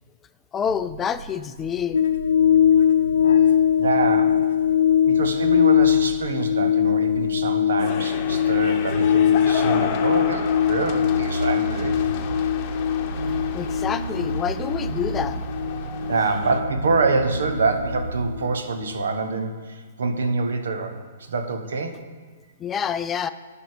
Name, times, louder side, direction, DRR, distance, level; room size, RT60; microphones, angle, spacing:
voice 1, 0.5-2.0 13.5-15.4 22.6-23.3, left 8 dB, 20° left, 12 dB, 0.3 m, -27 dB
sound 1, 0.7-18.4, right 3 dB, 85° right, 0.4 m, -34 dB
sound 2, 1.9-18.5 18.8-18.9, left 9 dB, 75° left, 0.7 m, -21 dB
voice 2, 3.8-4.5 5.0-12.3 16.1-22.0, right 3 dB, 70° right, 7 dB, 1.0 m, -26 dB
sound 3, 7.8-16.6, left 7 dB, 40° left, 0.9 m, -34 dB
11.5 x 5.2 x 4.8 m, 1.5 s
hypercardioid pair, 120°, 0 cm